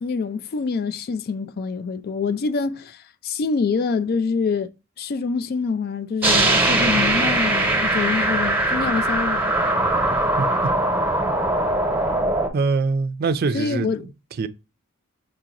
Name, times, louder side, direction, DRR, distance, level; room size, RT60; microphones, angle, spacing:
voice 1, 0.0-4.7 5.0-9.5 13.5-14.0, left 5 dB, 50° left, 0.4 m, -25 dB
sound 1, 6.2-12.5, right 2 dB, 10° right, 0.9 m, -21 dB
voice 2, 12.5-14.1 14.4-14.5, right 4 dB, 50° right, 0.4 m, -23 dB
6.5 x 2.9 x 2.4 m
head